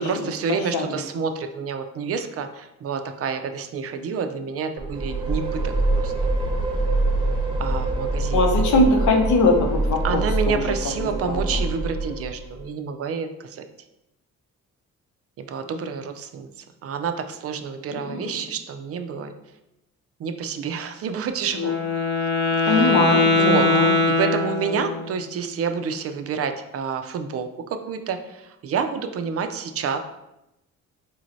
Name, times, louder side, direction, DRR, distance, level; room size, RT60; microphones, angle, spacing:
voice 1, 0.0-6.1 7.6-8.9 10.0-13.7 15.4-19.3 20.2-21.7 22.6-23.0 23.3-23.7 24.1-27.5 27.9-30.0, right 6 dB, 50° right, 8 dB, 0.4 m, -29 dB
sound 1, 4.8-12.6, right 2 dB, 15° right, 0.7 m, -25 dB
voice 2, 8.3-10.6 11.3-11.4 17.9-18.3 22.7-24.0, left 2 dB, 75° left, 2 dB, 0.7 m, -21 dB
Wind instrument woodwind instrument, 21.5-25.2, left 3 dB, 40° left, 0.9 m, -21 dB
4.0 x 3.1 x 2.6 m, 0.89 s
cardioid pair, 90°, 30 cm